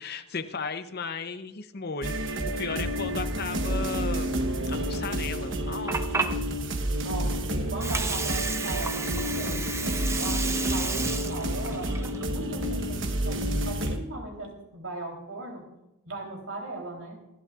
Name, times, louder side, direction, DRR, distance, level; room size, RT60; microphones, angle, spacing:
voice 1, 0.0-4.4 4.7-6.4, left 5 dB, 45° left, 9 dB, 0.8 m, -35 dB
sound 1, 2.0-14.0, right 1 dB, 55° right, 1.1 m, -29 dB
Water, 5.5-13.5, right 4 dB, 15° right, 0.6 m, -33 dB
voice 2, 7.0-15.7 16.0-17.3, right 2 dB, 75° right, 1 dB, 3.5 m, -38 dB
26.5 x 11.0 x 2.5 m, 0.90 s
head